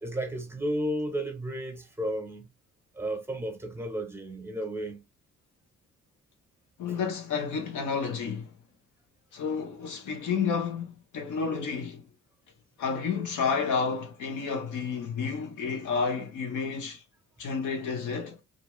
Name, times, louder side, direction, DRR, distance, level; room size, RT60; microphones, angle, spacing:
voice 1, 0.0-2.5 2.9-5.0, right 1 dB, 10° right, 0.8 m, -33 dB
voice 2, 6.8-8.5 9.3-12.1 12.8-17.0 17.4-18.4, left 5 dB, 75° left, 0.9 m, -30 dB
2.5 x 2.2 x 3.0 m
cardioid pair, 90°, 30 cm